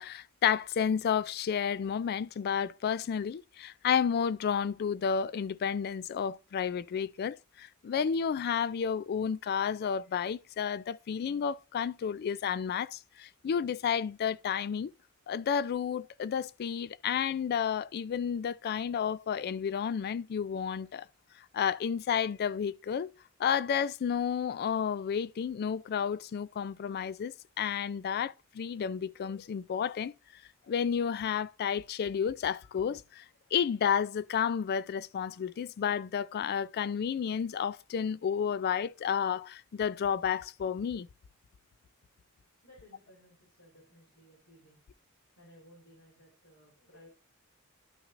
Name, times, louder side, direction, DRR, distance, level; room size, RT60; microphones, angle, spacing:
voice 1, 0.0-14.9 15.3-21.1 21.5-23.1 23.4-30.1 30.7-33.2 33.5-41.1, left 7 dB, 50° left, 0.3 m, -31 dB
voice 2, 42.6-44.8 45.4-47.1, equal, 70° left, 3.8 m, -58 dB
12.0 x 5.9 x 2.5 m
head